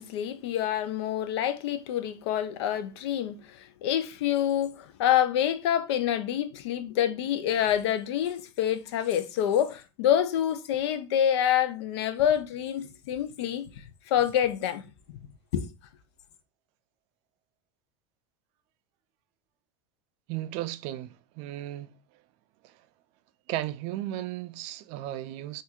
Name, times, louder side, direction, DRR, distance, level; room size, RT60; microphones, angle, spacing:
voice 1, 0.0-14.8 15.5-15.7, left 10 dB, 85° left, 0.5 m, -27 dB
voice 2, 20.3-21.9 22.6-22.7 23.5-25.6, right 14 dB, 55° right, 0.4 m, -35 dB
4.3 x 2.5 x 2.3 m
supercardioid pair, 140°, 14 cm